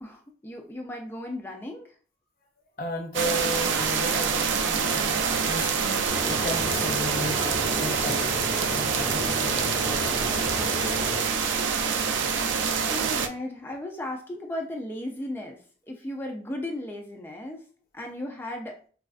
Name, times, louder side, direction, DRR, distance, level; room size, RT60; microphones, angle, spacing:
voice 1, 0.0-1.9 11.6-11.9 12.9-15.6 15.9-17.6 17.9-18.8, left 1 dB, 10° left, 1 dB, 0.4 m, -36 dB
voice 2, 2.8-10.3, left 1 dB, 50° left, 1 dB, 0.6 m, -35 dB
Rain Pluie, 3.1-13.3, right 6 dB, 85° right, 0.4 m, -26 dB
sound 1, 6.1-11.2, left 1 dB, 20° right, 1.4 m, -34 dB
4.1 x 2.4 x 2.4 m, 0.41 s
head